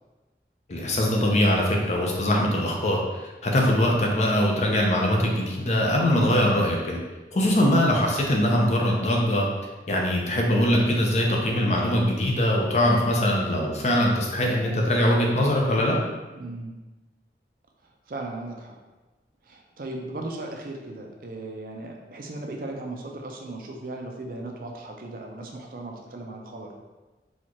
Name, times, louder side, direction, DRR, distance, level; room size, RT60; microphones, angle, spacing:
voice 1, 0.7-7.0 7.3-9.5 9.9-16.0, left 1 dB, 40° left, -1 dB, 0.5 m, -22 dB
voice 2, 7.4-7.7 16.3-16.8 18.1-18.8 19.4-26.8, right 2 dB, 50° right, 1 dB, 0.4 m, -37 dB
4.2 x 2.4 x 3.0 m, 1.2 s
head